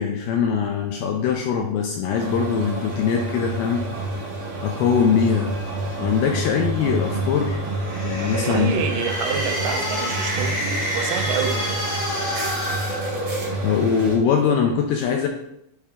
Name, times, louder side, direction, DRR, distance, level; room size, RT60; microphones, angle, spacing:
voice 1, 0.0-3.9 4.6-5.5 6.0-7.6 8.0-8.7 13.6-15.3, left 7 dB, 80° left, 2 dB, 2.2 m, -22 dB
sound 1, 2.1-14.2, right 2 dB, 55° right, 1.5 m, -29 dB
sound 2, 7.6-13.7, equal, 45° left, 1.1 m, -28 dB
voice 2, 8.3-11.9, right 7 dB, 90° right, 4 dB, 2.9 m, -28 dB
8.3 x 3.6 x 3.6 m, 0.78 s
omnidirectional pair, 5.1 m